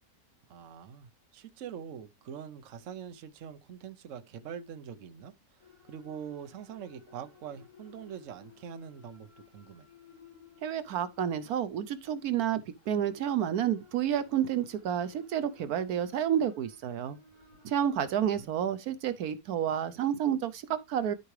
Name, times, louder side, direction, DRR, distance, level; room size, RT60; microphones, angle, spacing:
voice 1, 0.5-5.3 5.8-9.9 18.0-18.5, right 8 dB, 60° right, 1.1 m, -44 dB
sound 1, 5.6-18.5, left 5 dB, 70° left, 5.2 m, -58 dB
voice 2, 10.6-17.2 17.6-21.1, right 9 dB, 80° right, 1.2 m, -30 dB
12.5 x 4.8 x 3.2 m
omnidirectional pair, 1.6 m